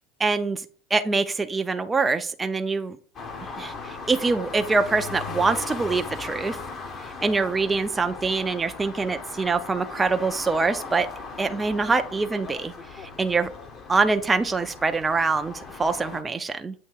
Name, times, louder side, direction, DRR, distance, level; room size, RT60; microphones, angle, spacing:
voice 1, 0.2-0.7 0.9-3.0 3.6-6.6 7.2-11.1 11.4-13.5 13.9-16.7, right 4 dB, 15° right, 8 dB, 0.5 m, -24 dB
sound 1, 3.1-16.2, left 4 dB, 40° left, 1.0 m, -38 dB
7.9 x 2.8 x 4.6 m, 0.43 s
supercardioid pair, 105°, 0 cm